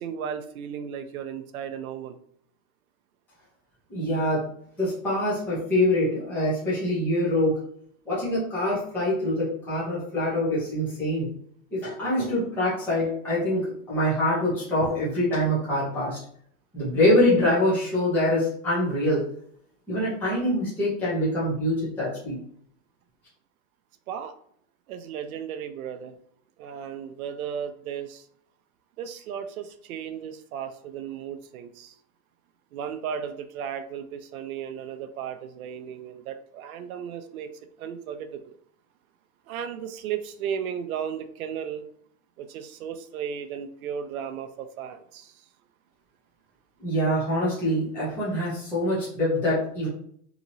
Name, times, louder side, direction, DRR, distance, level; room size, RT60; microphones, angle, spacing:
voice 1, 0.0-2.2 24.1-24.3 24.9-26.1 26.6-28.3 29.0-32.0 32.7-37.5 37.8-38.6 39.5-41.8 42.4-45.4, right 8 dB, 85° right, 8 dB, 0.6 m, -35 dB
voice 2, 3.9-4.4 4.8-7.6 8.1-11.3 11.7-16.2 16.7-19.2 19.9-22.4 46.8-49.9, left 1 dB, 5° left, -10 dB, 0.6 m, -25 dB
2.9 x 2.8 x 2.6 m, 0.63 s
supercardioid pair, 170°, 41 cm